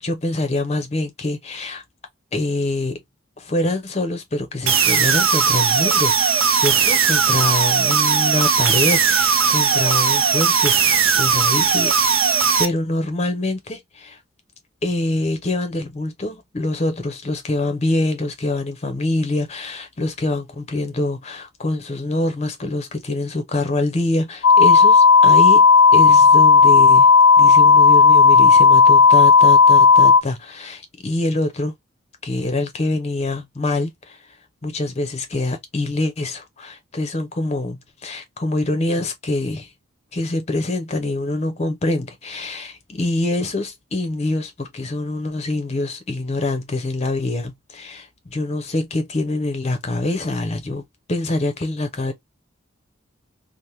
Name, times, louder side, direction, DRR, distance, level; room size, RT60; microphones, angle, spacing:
voice 1, 0.0-1.8 2.3-3.0 3.4-11.9 12.2-14.2 14.8-25.6 25.9-27.1 27.4-31.7 32.2-34.2 34.6-39.7 40.1-52.1, left 2 dB, 30° left, 0.6 m, -25 dB
sound 1, 4.7-12.7, right 6 dB, 80° right, 0.5 m, -18 dB
sound 2, 24.4-30.2, left 5 dB, 65° left, 0.3 m, -11 dB
3.4 x 2.1 x 2.7 m
head